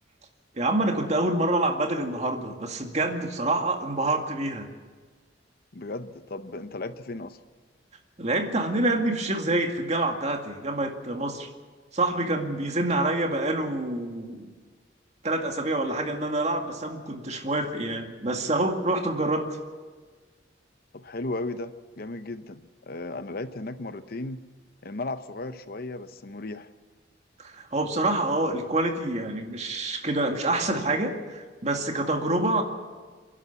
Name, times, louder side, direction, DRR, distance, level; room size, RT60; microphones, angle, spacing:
voice 1, 0.5-4.7 8.2-11.5 11.9-14.5 15.2-19.6 27.4-32.6, right 2 dB, 40° right, 4 dB, 2.2 m, -27 dB
voice 2, 5.7-7.4 20.9-24.4 24.8-26.7, left 2 dB, 55° left, 11 dB, 0.8 m, -35 dB
28.5 x 11.0 x 8.3 m, 1.5 s
head